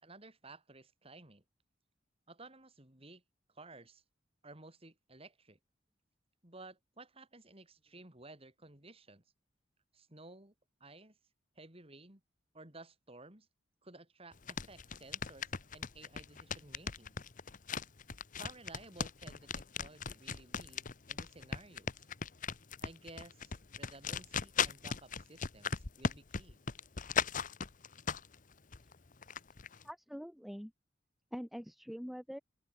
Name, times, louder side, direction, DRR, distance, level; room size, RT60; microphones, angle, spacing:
voice 1, 0.0-1.4 2.3-3.2 3.5-4.0 4.4-5.6 6.4-9.2 9.9-10.5 10.8-11.2 11.6-12.2 12.5-13.5 13.8-17.2 18.4-22.1 22.8-26.6, right 2 dB, 30° right, 3.9 m, -55 dB
sound 1, 14.3-28.4 28.7-29.8, left 6 dB, 45° left, 1.1 m, -37 dB
voice 2, 29.8-30.7 31.3-32.4, equal, ahead, 0.8 m, -44 dB
open air
head